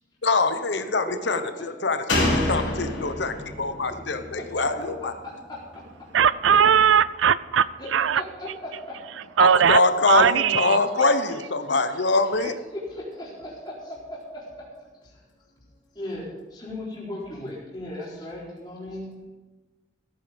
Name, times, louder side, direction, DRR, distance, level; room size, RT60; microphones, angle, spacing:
voice 1, 0.2-5.1 9.4-12.5, left 3 dB, 65° left, 0.9 m, -24 dB
voice 2, 1.0-1.4 4.1-4.6 5.2-6.2 7.8-9.2 10.7-10.8 12.7-15.2 15.9-19.3, left 1 dB, 20° left, 4.2 m, -37 dB
Slam, 2.1-5.6 5.9-6.0, left 1 dB, 80° left, 4.4 m, -28 dB
voice 3, 6.1-8.2 9.4-9.8 10.1-10.8, right 8 dB, 85° right, 0.4 m, -19 dB
16.0 x 9.1 x 5.3 m
head